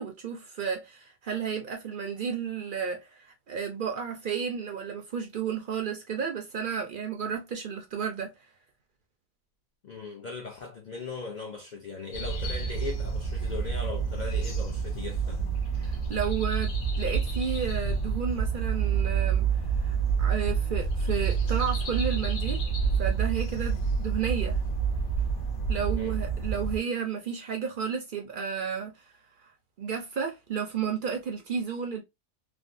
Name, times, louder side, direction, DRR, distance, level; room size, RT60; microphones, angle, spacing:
voice 1, 0.0-8.3 15.8-19.5 19.8-22.6 23.0-24.6 25.7-29.1 29.4-29.5 29.8-32.0, right 7 dB, 60° right, 0.5 m, -32 dB
voice 2, 9.8-15.4 25.9-26.2, left 4 dB, 65° left, 0.4 m, -39 dB
sound 1, 12.1-26.8, right 6 dB, 85° left, 1.4 m, -28 dB
3.3 x 2.0 x 2.5 m
omnidirectional pair, 1.4 m